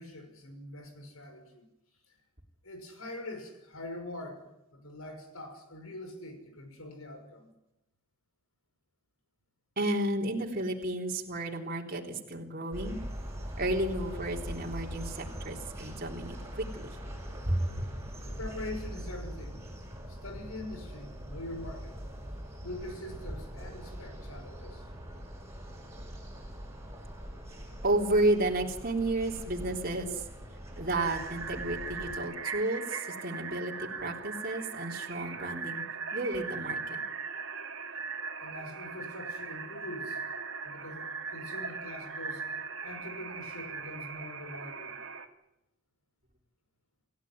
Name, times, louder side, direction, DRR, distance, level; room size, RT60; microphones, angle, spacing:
voice 1, 0.0-1.7 2.6-4.4 4.7-7.5 18.3-19.6 20.1-21.9 22.6-24.9 38.4-40.2 40.6-42.5 42.8-45.0, left 1 dB, 80° left, 6 dB, 6.0 m, -43 dB
voice 2, 9.8-13.0 13.6-16.9 17.5-17.6 27.8-30.3 30.8-35.8 36.1-37.0, right 1 dB, 45° right, 0 dB, 3.7 m, -32 dB
sound 1, 12.7-32.2, equal, 15° right, 7.5 m, -42 dB
sound 2, 30.9-45.3, right 5 dB, 60° right, 2.6 m, -39 dB
29.0 x 16.0 x 9.6 m, 0.88 s
head